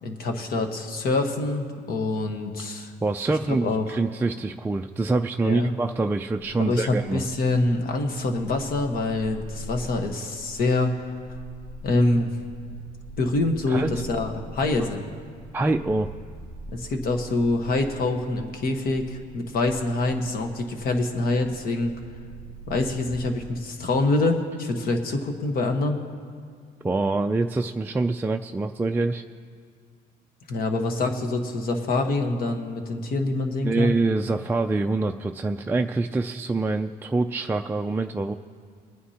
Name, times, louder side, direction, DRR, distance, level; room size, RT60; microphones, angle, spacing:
voice 1, 0.0-2.9 3.5-4.0 5.4-5.7 6.6-11.1 11.8-12.3 13.2-15.0 16.7-21.9 22.7-26.0 30.5-33.9, left 2 dB, 60° left, 4 dB, 1.3 m, -25 dB
voice 2, 3.0-7.2 13.7-13.9 15.5-16.1 26.8-29.2 33.6-38.3, right 3 dB, 10° right, 4 dB, 0.3 m, -25 dB
sound 1, 11.1-23.2, equal, 80° left, 1.8 m, -43 dB
22.5 x 9.5 x 2.9 m, 2.1 s
cardioid pair, 110°, 17 cm